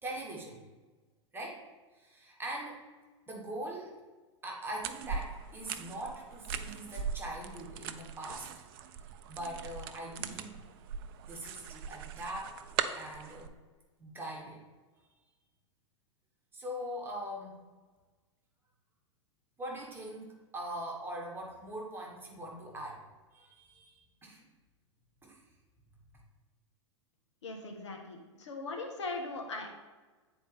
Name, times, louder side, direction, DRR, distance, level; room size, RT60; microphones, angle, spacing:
voice 1, 0.0-0.6 1.3-1.6 2.0-2.8 3.3-4.0 4.4-8.5 9.3-10.6 11.2-12.6 12.9-13.5 14.0-14.6 16.5-17.6 19.6-23.0 23.3-24.4 25.2-25.4, right 1 dB, 15° right, -2 dB, 1.7 m, -42 dB
sound 1, 4.8-13.5, right 7 dB, 50° right, 0.5 m, -40 dB
voice 2, 27.4-29.7, left 3 dB, 70° left, 3 dB, 1.1 m, -39 dB
9.1 x 4.2 x 3.5 m, 1.3 s
figure-of-eight pair, 95°, 16 cm